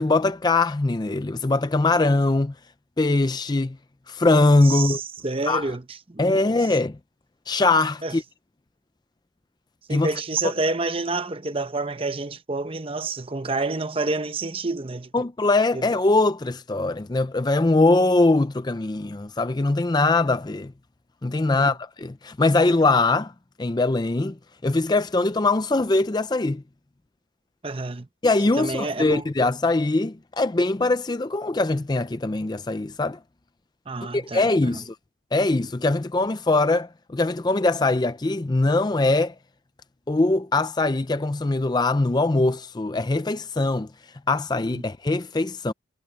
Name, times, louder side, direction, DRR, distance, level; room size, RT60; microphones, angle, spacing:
voice 1, 0.0-2.5 3.0-3.8 4.1-5.0 5.5-5.7 6.2-7.0 7.5-8.2 9.9-10.1 15.1-20.7 21.2-23.3 23.6-24.4 24.6-26.6 28.2-33.2 34.1-34.9 35.3-39.3 40.1-43.9 44.3-45.7, left 2 dB, 20° left, 0.4 m, -22 dB
voice 2, 4.6-6.4 8.0-8.1 9.9-15.1 15.7-15.9 21.5-21.7 27.6-28.1 28.6-29.2 33.9-34.4 44.7-44.8, right 3 dB, 25° right, 0.8 m, -28 dB
head